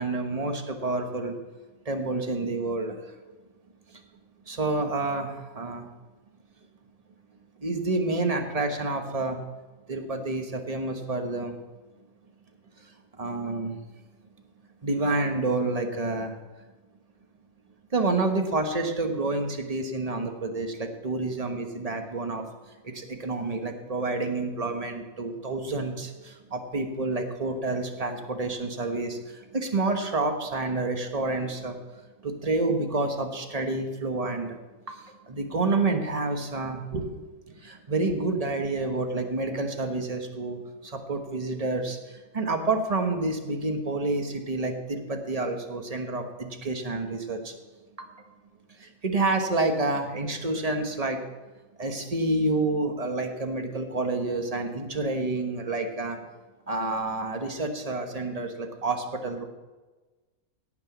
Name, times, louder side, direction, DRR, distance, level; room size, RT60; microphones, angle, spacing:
voice 1, 0.0-1.4 1.8-3.1 3.9-4.0 4.5-5.9 7.6-9.4 9.9-11.5 13.2-13.8 14.8-16.3 17.9-22.4 22.8-31.8 32.2-34.6 34.9-37.2 37.6-47.6 48.0-48.1 48.8-51.2 51.8-56.2 56.7-59.4, right 2 dB, 25° right, 4 dB, 1.3 m, -29 dB
17.0 x 6.0 x 6.1 m, 1.2 s
omnidirectional pair, 1.5 m